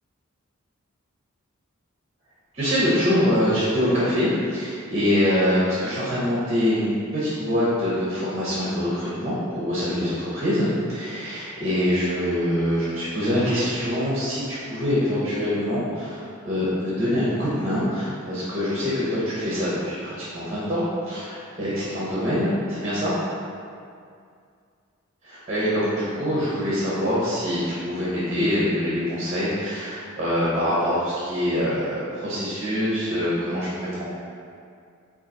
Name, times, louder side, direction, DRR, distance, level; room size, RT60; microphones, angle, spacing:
voice 1, 2.5-23.1 25.5-34.1, equal, 35° right, -9 dB, 0.8 m, -24 dB
3.9 x 2.5 x 4.0 m, 2.3 s
head